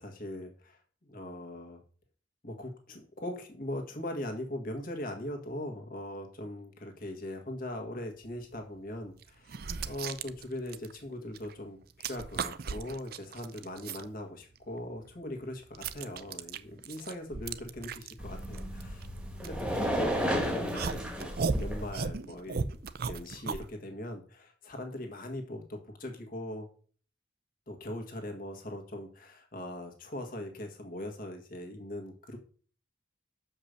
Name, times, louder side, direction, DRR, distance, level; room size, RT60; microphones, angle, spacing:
voice 1, 0.0-1.8 2.4-19.1 19.4-22.6 23.1-26.7 27.7-32.4, left 1 dB, 45° left, 4 dB, 1.7 m, -40 dB
sound 1, 8.4-8.6 9.2-11.5 11.8-14.1 14.5-20.2 20.7-23.7, right 5 dB, 50° right, 0.5 m, -37 dB
sound 2, 18.2-21.9, equal, 5° right, 1.4 m, -33 dB
6.7 x 5.4 x 6.6 m, 0.43 s
head